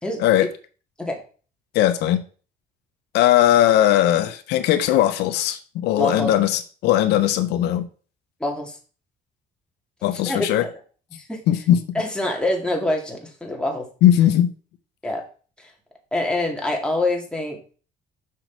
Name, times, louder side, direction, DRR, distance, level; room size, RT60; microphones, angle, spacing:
voice 1, 0.0-0.5 1.0-1.2 6.0-6.3 8.4-8.8 10.3-10.5 11.1-11.4 11.9-13.9 15.0-15.2 15.6-15.7 16.1-17.7, left 1 dB, 5° left, 0 dB, 2.2 m, -25 dB
voice 2, 1.7-2.2 3.1-7.9 10.0-10.6 11.5-11.8 14.0-14.5, left 12 dB, 85° left, 9 dB, 0.8 m, -18 dB
6.2 x 6.1 x 4.6 m, 0.39 s
cardioid pair, 110°, 17 cm